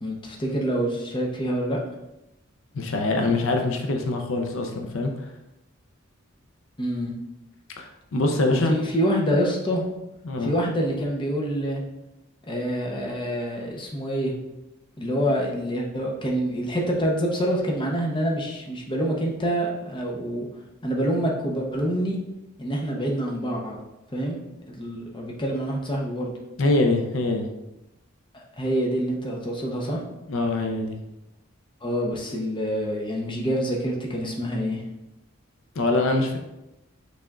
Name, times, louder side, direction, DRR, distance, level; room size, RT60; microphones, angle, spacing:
voice 1, 0.0-1.8 6.8-7.1 8.5-9.8 10.4-11.8 12.4-14.3 15.0-20.5 20.8-22.2 22.6-23.8 24.1-24.4 24.7-26.4 28.3-30.0 31.8-34.8, equal, 25° left, -1 dB, 0.7 m, -26 dB
voice 2, 2.7-5.2 7.8-8.8 10.2-10.5 26.6-27.5 30.3-31.0 35.8-36.4, left 2 dB, 70° left, 3 dB, 0.5 m, -24 dB
6.0 x 3.4 x 2.4 m, 0.91 s
head